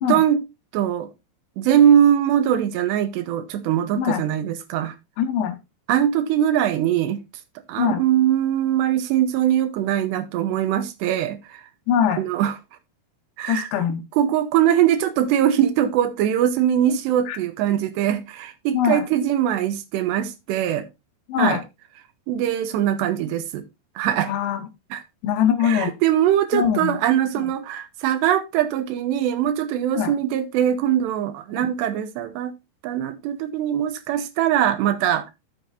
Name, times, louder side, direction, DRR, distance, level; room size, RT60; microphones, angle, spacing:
voice 1, 0.0-0.4 0.7-1.1 1.6-5.0 5.9-7.2 7.7-11.6 12.2-12.6 13.4-13.7 14.1-20.9 21.4-21.6 22.3-23.6 24.0-24.3 24.9-25.0 25.6-32.5 32.8-35.3, right 10 dB, 80° right, 2.8 m, -21 dB
voice 2, 5.2-5.6 7.8-8.0 11.9-12.2 13.5-14.0 17.3-17.4 18.7-19.0 21.3-21.6 24.2-24.6 25.2-25.9 26.5-26.9 27.4-27.5 30.0-30.1 31.6-31.7, left 8 dB, 75° left, 2.3 m, -22 dB
12.5 x 7.4 x 2.5 m
omnidirectional pair, 5.4 m